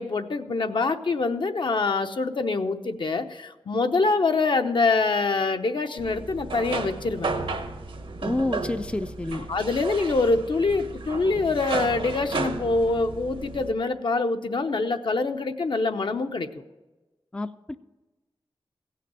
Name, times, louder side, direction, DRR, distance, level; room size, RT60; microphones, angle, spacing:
voice 1, 0.0-7.3 9.5-16.6, left 3 dB, 65° left, 7 dB, 0.8 m, -25 dB
sound 1, 6.0-13.7, right 3 dB, 75° right, 1.1 m, -33 dB
voice 2, 8.2-9.5 17.3-17.7, left 2 dB, 10° left, 10 dB, 0.4 m, -29 dB
16.0 x 5.8 x 7.5 m, 1.1 s
wide cardioid pair, 75°, 9 cm